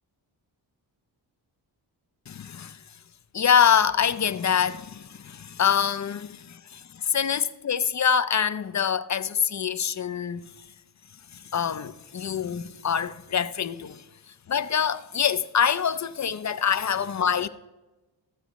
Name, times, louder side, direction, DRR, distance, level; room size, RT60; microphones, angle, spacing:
voice 1, 2.3-2.8 3.3-10.5 11.5-14.0 14.5-17.5, left 7 dB, 40° left, 0.5 m, -25 dB
15.0 x 8.0 x 3.1 m
cardioid pair, 75°, 45 cm